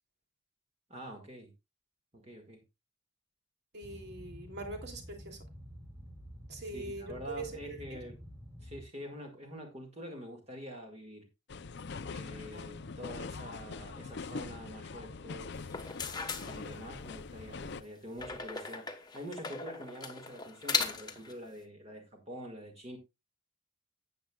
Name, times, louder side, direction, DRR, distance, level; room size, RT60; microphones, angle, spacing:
voice 1, 0.9-1.5 2.1-2.6 6.6-8.2 8.6-11.3 12.1-16.0 16.4-23.0, equal, 30° right, 1.9 m, -46 dB
voice 2, 3.7-5.4 6.5-8.0 12.5-12.7, right 2 dB, 55° right, 2.7 m, -43 dB
Boat Water vehicle, 3.8-8.8, equal, 15° right, 3.2 m, -49 dB
sound 1, 11.5-17.8, left 4 dB, 55° left, 0.5 m, -43 dB
sound 2, 15.6-17.2 18.2-21.3, left 4 dB, 20° left, 1.2 m, -37 dB
13.5 x 8.9 x 2.3 m
head